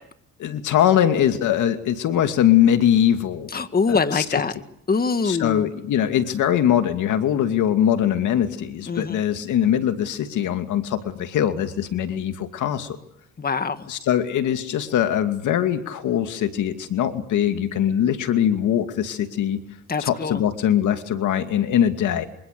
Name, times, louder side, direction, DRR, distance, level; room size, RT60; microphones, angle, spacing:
voice 1, 0.4-3.5 3.9-4.4 5.2-13.0 13.9-19.6 20.0-22.3, left 10 dB, 80° left, 8 dB, 2.5 m, -22 dB
voice 2, 3.5-4.5 4.9-5.7 8.9-9.2 13.4-13.8 19.9-20.4, left 4 dB, 30° left, 10 dB, 1.8 m, -23 dB
27.5 x 26.5 x 6.8 m, 0.73 s
cardioid pair, 90°, 30 cm